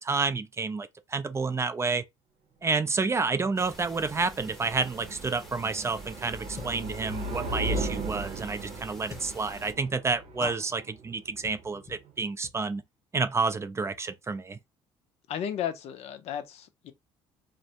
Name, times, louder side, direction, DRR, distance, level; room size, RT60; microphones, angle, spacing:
voice 1, 0.0-2.0 2.6-12.8 13.1-14.6, right 4 dB, 25° right, 0.3 m, -29 dB
sound 1, 3.1-12.1, right 2 dB, 70° right, 0.8 m, -37 dB
sound 2, 3.6-9.7, equal, ahead, 0.9 m, -48 dB
sound 3, 6.5-6.9 7.7-8.1 9.0-9.3 10.4-10.7 11.4-11.6 11.9-12.0 12.4-12.6, left 4 dB, 25° left, 0.7 m, -45 dB
voice 2, 15.3-16.9, left 9 dB, 60° left, 0.5 m, -34 dB
2.4 x 2.1 x 2.7 m
supercardioid pair, 75°, 12 cm